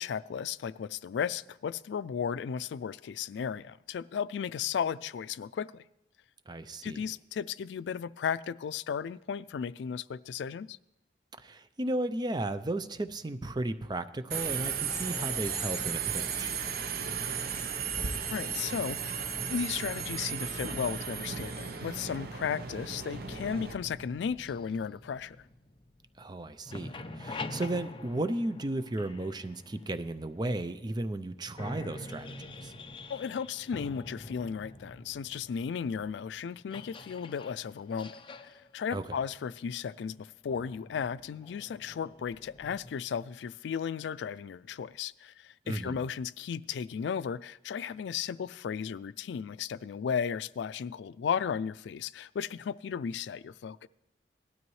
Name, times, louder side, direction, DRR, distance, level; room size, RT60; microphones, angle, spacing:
voice 1, 0.0-5.8 6.8-10.8 18.3-25.4 33.1-38.2 38.4-53.9, left 7 dB, 80° left, 0.3 m, -35 dB
voice 2, 6.5-7.0 11.4-16.5 26.2-32.7 38.9-39.2 45.7-46.0, right 1 dB, 25° right, 0.5 m, -35 dB
Subway metro underground, 14.3-23.7, right 6 dB, 55° right, 0.7 m, -35 dB
sound 1, 23.1-26.3 26.6-30.5 31.1-31.2 31.5-42.9, left 2 dB, 30° left, 0.6 m, -46 dB
18.0 x 12.5 x 3.1 m
head